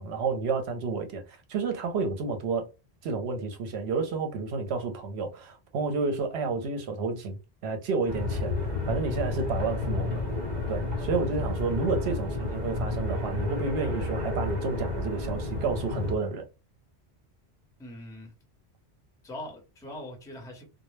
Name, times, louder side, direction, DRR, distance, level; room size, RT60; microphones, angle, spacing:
voice 1, 0.0-2.7 3.0-8.5 8.9-10.2 10.7-16.5, right 4 dB, 80° right, 0.9 m, -30 dB
sound 1, 8.1-16.2, left 2 dB, 45° right, 0.8 m, -31 dB
voice 2, 17.8-18.3 19.2-20.7, left 1 dB, 5° left, 0.6 m, -41 dB
2.1 x 2.0 x 3.1 m
omnidirectional pair, 1.1 m